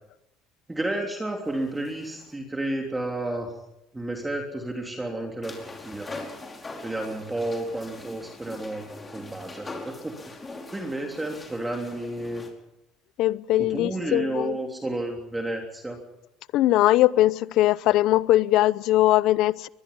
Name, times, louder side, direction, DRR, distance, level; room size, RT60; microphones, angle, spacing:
voice 1, 0.7-3.5 3.9-6.1 6.8-10.1 10.7-12.4 13.6-16.0, right 1 dB, 10° right, 3.3 m, -31 dB
sound 1, 1.4-2.3 5.4-12.5, left 2 dB, 20° left, 5.2 m, -42 dB
voice 2, 13.2-14.6 16.5-19.7, left 15 dB, 65° left, 0.7 m, -21 dB
23.0 x 22.0 x 5.6 m
supercardioid pair, 105°, 0 cm